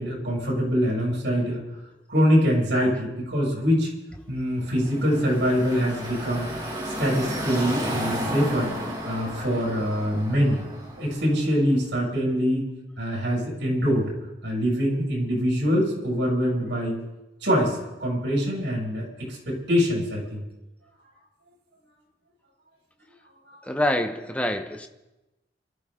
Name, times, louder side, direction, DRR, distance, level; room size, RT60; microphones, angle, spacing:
voice 1, 0.0-1.6 2.1-3.9 4.3-6.5 6.8-8.7 9.1-10.6 11.0-12.7 13.0-14.1 14.4-17.0 17.4-20.4 23.5-23.6, equal, 85° right, -3 dB, 7.1 m, -24 dB
Car passing by / Traffic noise roadway noise, 4.6-11.5, equal, 25° right, 4.8 m, -33 dB
voice 2, 23.6-24.9, left 1 dB, 5° left, 6 dB, 1.0 m, -26 dB
28.0 x 13.0 x 3.9 m, 1.0 s
head